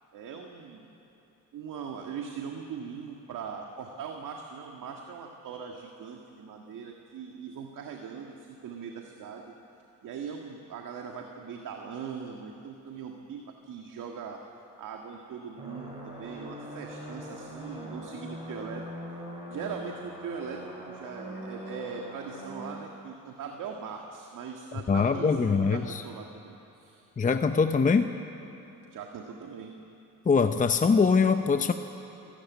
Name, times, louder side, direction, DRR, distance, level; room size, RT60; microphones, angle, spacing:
voice 1, 0.1-0.9 1.5-9.5 10.0-14.4 14.8-18.8 19.5-27.1 28.9-29.7, right 6 dB, 65° right, 2 dB, 1.8 m, -40 dB
sound 1, 15.6-22.7, equal, 20° right, 6.9 m, -42 dB
voice 2, 24.9-26.0 27.2-28.1 30.3-31.7, left 5 dB, 25° left, 8 dB, 0.8 m, -23 dB
25.5 x 14.0 x 9.5 m, 3.0 s
cardioid pair, 95°, 34 cm